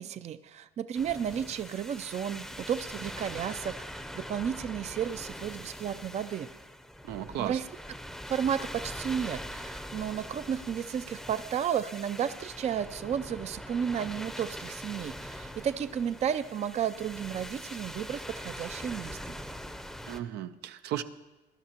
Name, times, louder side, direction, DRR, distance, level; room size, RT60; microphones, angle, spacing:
voice 1, 0.0-6.5 7.4-7.6 8.3-19.4, right 8 dB, 40° right, 12 dB, 0.5 m, -33 dB
sound 1, 0.9-20.2, equal, ahead, 0.7 m, -42 dB
voice 2, 7.0-7.6 20.0-21.0, right 11 dB, 80° right, 10 dB, 0.6 m, -35 dB
20.0 x 11.5 x 2.9 m, 1.1 s
cardioid pair, 110°, 17 cm